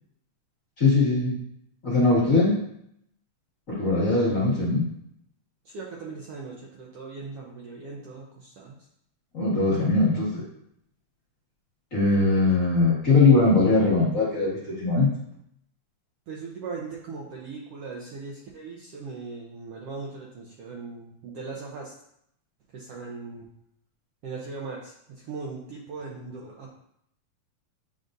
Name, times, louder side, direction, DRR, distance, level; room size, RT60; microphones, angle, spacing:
voice 1, 0.8-1.4 1.8-2.6 3.7-4.8 9.3-10.5 11.9-15.1, left 3 dB, 30° left, -8 dB, 1.8 m, -21 dB
voice 2, 5.6-8.9 16.3-22.0 22.7-23.5 24.2-26.7, right 4 dB, 70° right, -2 dB, 1.5 m, -39 dB
9.9 x 4.0 x 2.6 m, 0.74 s
omnidirectional pair, 3.4 m